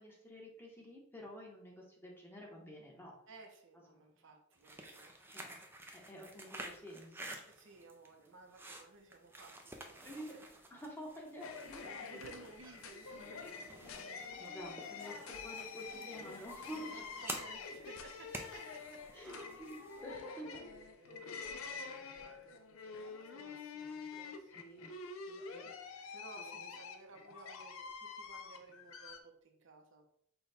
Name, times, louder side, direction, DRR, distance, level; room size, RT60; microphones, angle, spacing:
voice 1, 0.0-3.2 4.0-4.1 5.3-5.6 5.9-7.3 10.0-10.3 10.7-12.2 14.4-17.2 19.1-20.6 24.5-24.9 25.3-25.7 26.4-26.7, equal, 10° left, -2 dB, 0.9 m, -50 dB
voice 2, 3.3-5.1 7.4-10.5 11.8-14.8 16.7-19.8 20.1-24.7 25.2-25.6 26.1-30.1, right 3 dB, 60° right, 3 dB, 0.7 m, -58 dB
sound 1, 4.5-20.1, right 2 dB, 10° right, 0.4 m, -51 dB
sound 2, 11.4-29.2, left 5 dB, 70° left, 0.5 m, -47 dB
5.6 x 2.2 x 4.1 m, 0.70 s
head